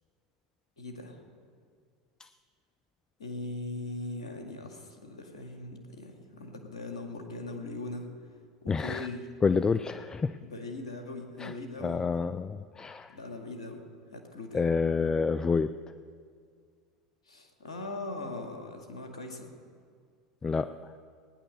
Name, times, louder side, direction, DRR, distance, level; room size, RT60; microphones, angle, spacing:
voice 1, 0.8-1.2 3.2-8.1 8.6-9.3 10.4-12.0 13.1-13.8 14.1-14.7 17.3-19.5, left 2 dB, 85° left, 3 dB, 2.0 m, -40 dB
voice 2, 8.7-9.1 9.4-10.4 11.4-11.5 11.8-13.2 14.5-15.8 20.4-20.9, left 5 dB, 20° left, 13 dB, 0.4 m, -28 dB
18.5 x 10.0 x 6.4 m, 2.1 s
hypercardioid pair, 85°, 3 cm